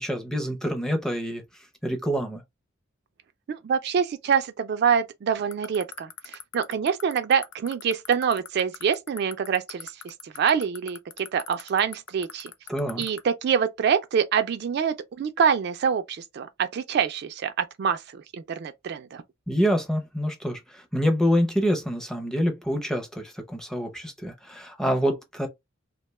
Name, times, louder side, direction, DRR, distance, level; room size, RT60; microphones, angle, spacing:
voice 1, 0.0-1.4 1.8-2.4 12.7-13.0 19.5-25.5, equal, 5° left, 0.5 m, -26 dB
voice 2, 3.5-12.5 13.0-19.2, right 7 dB, 55° right, 0.3 m, -26 dB
sound 1, 5.5-13.2, left 10 dB, 70° left, 0.4 m, -37 dB
2.6 x 2.2 x 2.9 m
head